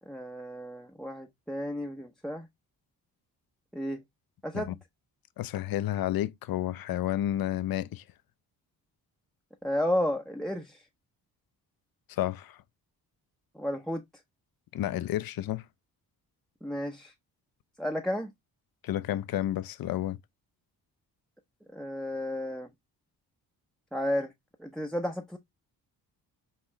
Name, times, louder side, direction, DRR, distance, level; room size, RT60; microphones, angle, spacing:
voice 1, 0.1-2.5 3.7-4.0 4.4-4.8 9.6-10.8 13.5-14.0 16.6-17.1 17.8-18.3 21.7-22.7 23.9-24.3 24.6-25.4, left 1 dB, ahead, 0.6 m, -32 dB
voice 2, 5.4-8.0 12.1-12.6 14.7-15.6 18.8-20.2, left 13 dB, 60° left, 0.5 m, -31 dB
5.6 x 2.4 x 3.0 m
cardioid pair, 70°, 41 cm